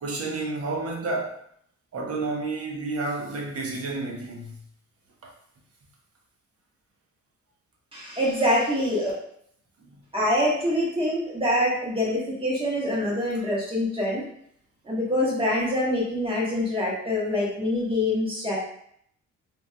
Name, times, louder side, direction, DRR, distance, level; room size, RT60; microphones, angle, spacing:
voice 1, 0.0-1.4 1.9-4.6 5.2-5.3 9.8-10.0 13.3-13.4, right 3 dB, 50° right, 0 dB, 0.8 m, -31 dB
voice 2, 7.9-9.1 10.1-14.2 14.9-18.6, left 1 dB, 20° right, -5 dB, 1.2 m, -25 dB
3.1 x 2.6 x 2.2 m, 0.67 s
cardioid pair, 90°, 30 cm